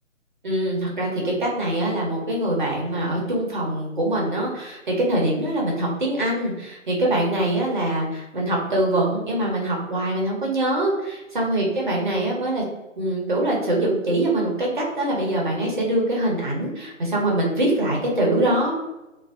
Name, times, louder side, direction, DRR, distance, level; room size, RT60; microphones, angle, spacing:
voice 1, 0.4-12.6 13.0-18.7, right 1 dB, 40° right, -3 dB, 0.7 m, -23 dB
2.5 x 2.1 x 2.4 m, 0.98 s
figure-of-eight pair, 150°, 39 cm